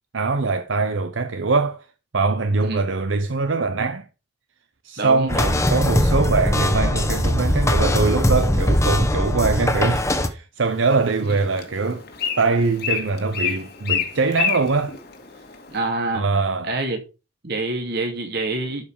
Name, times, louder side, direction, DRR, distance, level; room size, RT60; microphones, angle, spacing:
voice 1, 0.1-1.9 2.1-4.1 4.8-5.4 5.7-12.0 12.4-15.0 16.1-16.7, right 4 dB, 80° right, 0.8 m, -22 dB
voice 2, 5.0-5.6 11.2-11.4 15.7-16.2 16.6-17.0 17.4-18.9, right 2 dB, 55° right, 2.5 m, -26 dB
sound 1, 5.3-10.3, left 1 dB, 15° left, 1.1 m, -20 dB
Bird, 10.6-15.8, left 7 dB, 55° left, 1.9 m, -29 dB
12.0 x 5.3 x 4.9 m
head